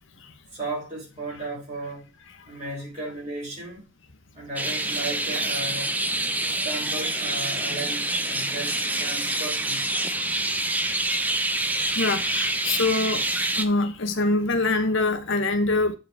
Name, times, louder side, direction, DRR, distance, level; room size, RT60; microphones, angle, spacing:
voice 1, 0.5-2.1 2.5-3.9 4.3-6.0 6.4-10.7, right 2 dB, 30° right, 3.6 m, -35 dB
sound 1, 4.6-13.7, right 2 dB, 5° right, 0.5 m, -26 dB
voice 2, 12.0-13.3 13.6-15.9, left 2 dB, 55° left, 1.0 m, -24 dB
8.8 x 4.6 x 4.7 m
head